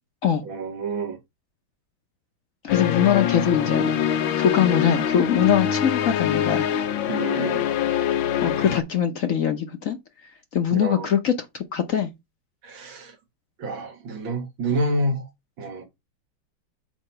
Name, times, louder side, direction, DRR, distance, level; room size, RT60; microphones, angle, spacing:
voice 1, 0.5-1.2 3.9-4.0 7.1-7.6 10.7-11.1 12.6-13.1 13.6-15.2 15.6-15.8, right 1 dB, 80° right, 2.3 m, -28 dB
voice 2, 2.6-4.0 4.4-6.7 8.4-10.0 10.5-12.1, left 8 dB, 55° left, 1.0 m, -22 dB
sound 1, 2.7-8.8, left 9 dB, 90° left, 1.6 m, -24 dB
7.7 x 2.8 x 5.5 m
omnidirectional pair, 2.1 m